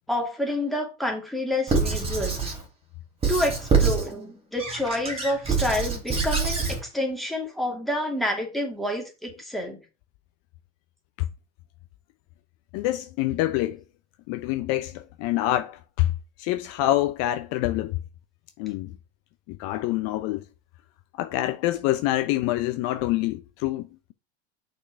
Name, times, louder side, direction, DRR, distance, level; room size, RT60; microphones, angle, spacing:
voice 1, 0.1-2.4 3.3-9.8, left 1 dB, ahead, 2.3 m, -28 dB
Squeak / Writing, 1.7-2.6 3.2-4.1 4.6-6.8, right 5 dB, 20° right, 2.9 m, -25 dB
voice 2, 12.7-13.8 14.3-16.1 16.4-18.0 18.6-19.0 19.5-20.5 21.1-24.1, left 15 dB, 50° left, 0.6 m, -26 dB
5.7 x 4.4 x 5.7 m
hypercardioid pair, 110°, 32 cm